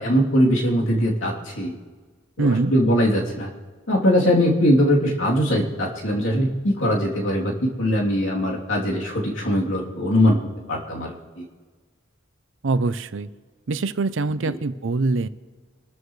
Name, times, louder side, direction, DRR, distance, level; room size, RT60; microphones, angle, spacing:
voice 1, 0.0-1.7 2.4-3.5 3.9-10.4 10.7-11.4 14.4-14.6, equal, 75° left, -2 dB, 3.2 m, -21 dB
voice 2, 2.4-2.7 12.6-13.3 13.7-15.3, right 3 dB, 70° right, 15 dB, 0.6 m, -23 dB
26.0 x 13.0 x 3.2 m, 1.4 s
head